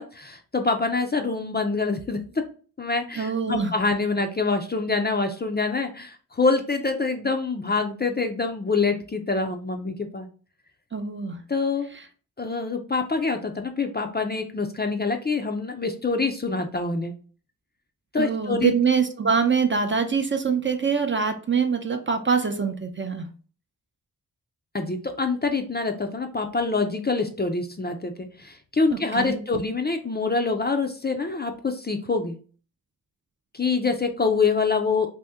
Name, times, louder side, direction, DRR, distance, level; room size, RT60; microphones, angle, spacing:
voice 1, 0.0-2.2 2.8-10.3 11.5-11.9 12.4-17.1 18.1-18.7 24.7-32.4 33.5-35.1, left 4 dB, 25° left, 5 dB, 0.5 m, -25 dB
voice 2, 3.2-3.7 10.9-11.4 18.2-23.3 29.2-29.4, right 5 dB, 30° right, 6 dB, 0.6 m, -24 dB
2.8 x 2.6 x 3.5 m, 0.40 s
cardioid pair, 50°, 40 cm